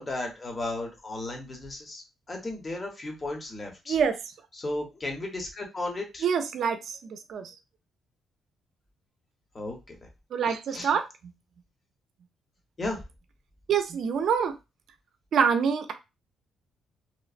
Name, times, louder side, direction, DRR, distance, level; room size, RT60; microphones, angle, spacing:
voice 1, 0.0-4.0 4.5-6.2 9.5-10.1 10.7-10.9 12.8-13.0, left 2 dB, 30° left, 2 dB, 0.9 m, -35 dB
voice 2, 6.2-7.5 10.3-11.0 13.7-14.5 15.3-15.9, right 6 dB, 65° right, 8 dB, 0.4 m, -26 dB
2.9 x 2.0 x 2.5 m, 0.25 s
cardioid pair, 90°, 0 cm